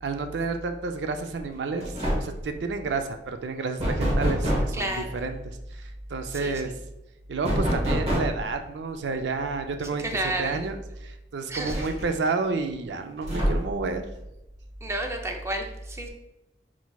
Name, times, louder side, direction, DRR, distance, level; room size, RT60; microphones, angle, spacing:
voice 1, 0.0-6.7 7.3-10.1 10.4-14.0, right 4 dB, 80° right, 7 dB, 0.4 m, -30 dB
sound 1, 1.3-1.5 1.8-2.5 3.8-4.8 7.4-8.5 10.0-10.1 10.5-10.6 11.6-12.3 13.2-13.9, equal, 40° right, 1.2 m, -26 dB
voice 2, 4.7-5.2 6.3-6.7 10.0-10.5 11.5-11.8 14.8-16.1, right 1 dB, 15° right, 2 dB, 0.5 m, -31 dB
4.6 x 4.0 x 2.3 m, 0.90 s
head